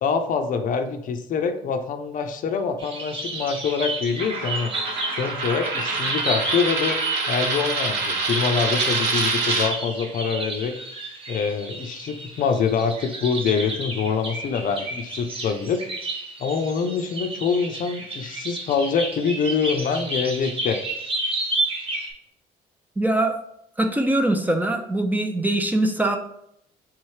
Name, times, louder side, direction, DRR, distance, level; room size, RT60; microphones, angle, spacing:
voice 1, 0.0-4.7 5.2-7.0 7.3-10.8 11.3-15.8 16.4-20.8, left 6 dB, 55° left, 8 dB, 0.5 m, -25 dB
sound 1, 2.8-22.1, right 2 dB, 35° right, 1.1 m, -32 dB
Coin (dropping), 4.2-9.7, right 3 dB, 85° right, 1.0 m, -26 dB
voice 2, 23.0-23.4 23.8-26.2, right 1 dB, 10° right, 5 dB, 0.4 m, -22 dB
3.6 x 3.2 x 4.6 m, 0.74 s
cardioid pair, 110°, 17 cm